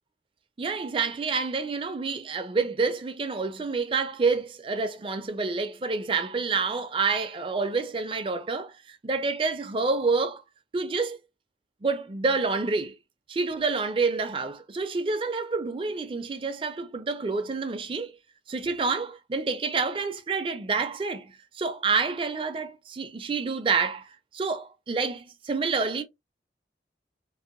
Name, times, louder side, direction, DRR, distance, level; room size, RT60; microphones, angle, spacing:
voice 1, 0.6-10.4 10.7-11.2 11.8-13.0 13.3-18.1 18.5-26.0, right 4 dB, 30° right, 0.4 m, -28 dB
2.7 x 2.2 x 2.4 m
head